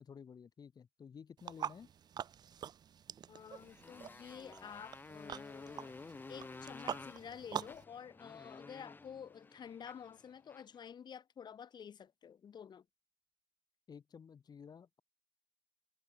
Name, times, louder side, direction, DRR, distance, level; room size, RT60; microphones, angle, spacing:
voice 1, 0.0-1.9 13.9-15.0, left 6 dB, 65° left, 3.6 m, -53 dB
sound 1, 1.4-7.8, right 8 dB, 70° right, 0.3 m, -46 dB
voice 2, 3.3-6.0 6.3-12.8, left 8 dB, 85° left, 1.0 m, -50 dB
Motorcycle, 3.4-10.8, left 3 dB, 25° left, 1.2 m, -52 dB
wide cardioid pair, 175°, 7 cm